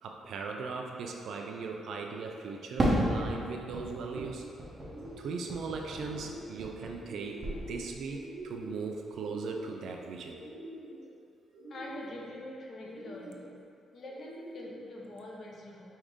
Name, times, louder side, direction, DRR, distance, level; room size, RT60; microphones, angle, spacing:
voice 1, 0.0-4.4 5.2-10.4, right 4 dB, 65° right, 2 dB, 0.3 m, -39 dB
Fireworks, 2.8-7.1 7.4-8.2, right 1 dB, 20° right, 0.6 m, -33 dB
sound 1, 3.3-3.4 3.8-4.5 4.8-5.5 5.9-6.6 7.0-7.7 8.1-8.9 9.2-9.9 10.3-11.1 11.5-12.3 12.8-13.5 14.1-14.9, right 1 dB, 90° right, 0.9 m, -46 dB
voice 2, 11.7-13.5 13.9-16.0, left 1 dB, 40° left, -3 dB, 0.6 m, -44 dB
4.8 x 2.6 x 3.6 m, 2.4 s
cardioid pair, 170°, 0 cm